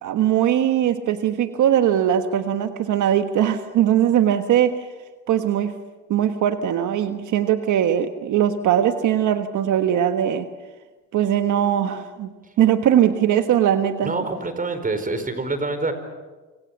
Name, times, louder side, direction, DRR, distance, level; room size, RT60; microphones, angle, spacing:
voice 1, 0.0-4.9 5.3-5.7 6.1-10.5 11.1-12.3 12.6-14.1, right 10 dB, 80° right, 8 dB, 1.4 m, -20 dB
voice 2, 14.0-15.9, right 3 dB, 30° right, 9 dB, 4.7 m, -26 dB
27.0 x 26.0 x 7.3 m, 1.3 s
cardioid pair, 90°, 30 cm